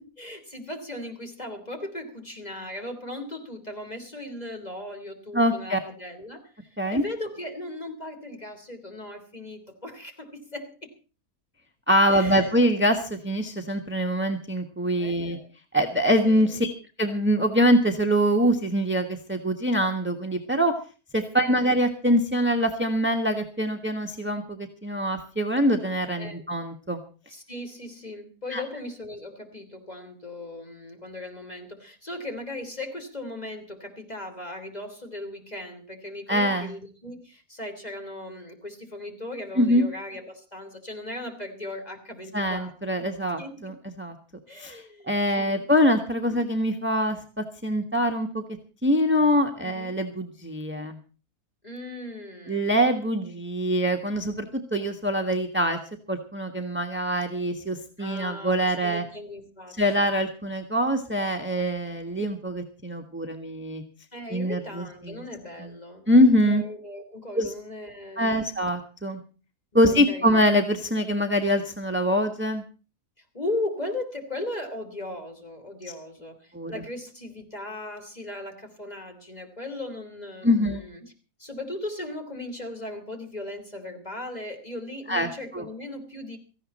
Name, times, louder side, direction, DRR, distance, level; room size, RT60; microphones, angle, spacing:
voice 1, 0.2-10.9 12.1-12.6 15.0-15.5 16.2-16.7 21.3-21.5 26.2-26.4 27.3-42.9 43.4-43.8 44.5-45.7 46.2-46.4 49.5-50.0 51.6-52.8 53.2-53.3 58.0-60.2 64.1-66.1 66.3-68.5 69.7-70.3 73.3-81.1 81.4-86.4, left 1 dB, 25° left, 4 dB, 3.2 m, -38 dB
voice 2, 5.3-5.8 6.8-7.0 11.9-15.4 15.7-16.7 17.0-20.7 21.1-27.0 28.5-28.6 36.3-36.7 39.6-39.9 42.3-44.1 44.6-48.4 48.8-51.0 52.5-55.8 56.1-59.0 59.8-63.8 64.3-65.2 65.6-65.7 66.1-66.6 67.3-67.5 68.2-69.2 69.7-72.6 76.5-76.8 80.4-80.8 85.1-85.3 85.5-85.6, equal, 10° right, 5 dB, 1.4 m, -24 dB
17.5 x 15.0 x 4.3 m, 0.36 s
omnidirectional pair, 1.5 m